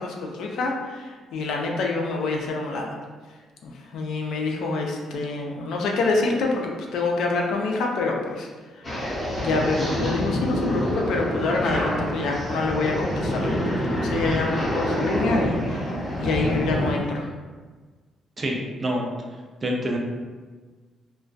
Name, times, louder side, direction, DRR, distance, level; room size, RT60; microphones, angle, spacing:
voice 1, 0.0-3.0 3.6-8.5 8.8-8.9 9.4-13.6 14.0-17.3, left 3 dB, 75° left, 0 dB, 0.4 m, -26 dB
sound 1, 8.8-16.9, equal, 20° left, 0.6 m, -26 dB
voice 2, 18.4-19.1 19.6-20.0, equal, 25° right, 0 dB, 0.3 m, -26 dB
2.2 x 2.2 x 2.5 m, 1.4 s
cardioid pair, 155°, 0 cm